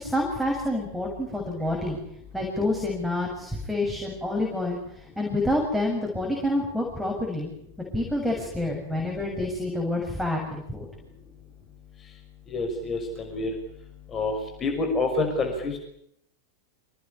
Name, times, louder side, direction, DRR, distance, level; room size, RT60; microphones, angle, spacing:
voice 1, 0.0-2.0 2.3-4.8 5.2-7.5 7.9-10.9, left 1 dB, ahead, -1 dB, 7.5 m, -28 dB
voice 2, 12.5-13.5 14.1-15.8, left 3 dB, 25° left, 4 dB, 5.8 m, -28 dB
26.5 x 19.5 x 10.0 m, 0.74 s
figure-of-eight pair, 90°, 0 cm